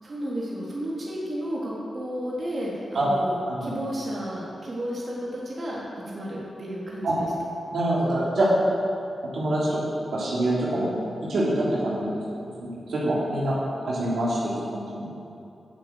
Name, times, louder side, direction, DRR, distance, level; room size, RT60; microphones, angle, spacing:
voice 1, 0.0-7.3 14.0-14.1, equal, 50° right, -6 dB, 3.3 m, -32 dB
voice 2, 7.7-8.5 9.3-9.8 10.1-10.9 11.3-12.1 12.6-13.6 13.8-14.4 14.7-15.1, right 1 dB, 75° right, -7 dB, 3.4 m, -25 dB
11.5 x 7.1 x 7.9 m, 2.8 s
cardioid pair, 45°, 0 cm